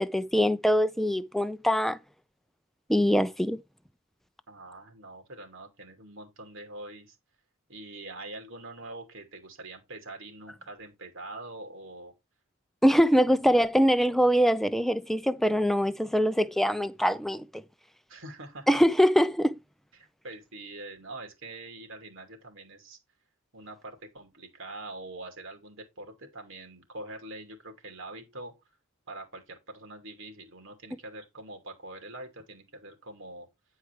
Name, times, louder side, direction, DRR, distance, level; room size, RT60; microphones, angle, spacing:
voice 1, 0.0-2.0 2.9-3.6 12.8-17.6 18.7-19.5, equal, ahead, 0.5 m, -23 dB
voice 2, 4.5-7.2 7.7-12.1 13.1-13.3 18.1-18.7 19.9-23.0 23.5-28.5 29.1-33.5, right 2 dB, 60° right, 2.7 m, -44 dB
9.7 x 4.7 x 4.6 m
head